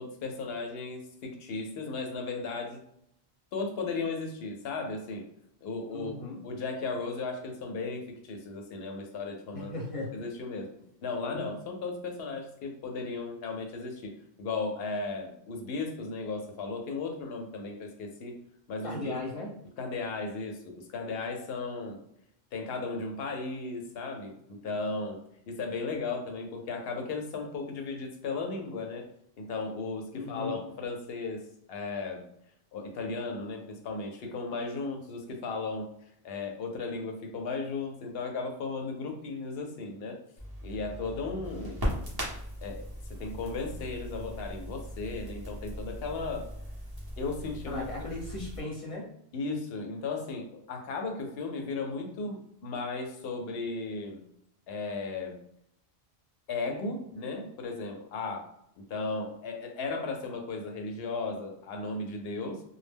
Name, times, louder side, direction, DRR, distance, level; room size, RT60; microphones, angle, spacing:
voice 1, 0.0-2.8 3.5-5.2 5.6-6.2 6.4-9.7 10.1-10.7 11.0-14.1 14.4-18.4 18.7-19.2 19.8-22.0 22.5-25.2 25.5-29.1 29.4-31.4 31.7-32.2 32.7-35.9 36.2-40.2 40.6-41.9 42.6-46.5 47.2-47.9 49.3-54.2 54.7-55.4 56.5-58.5 58.9-62.6, left 3 dB, 70° left, 3 dB, 0.8 m, -35 dB
voice 2, 5.9-6.4 9.5-10.1 11.3-11.4 18.8-19.5 30.1-30.6 47.7-49.0, left 2 dB, 35° left, -3 dB, 0.8 m, -37 dB
Crackle, 40.4-48.6, equal, 25° right, 0.7 m, -38 dB
2.2 x 2.0 x 3.3 m, 0.73 s
omnidirectional pair, 1.1 m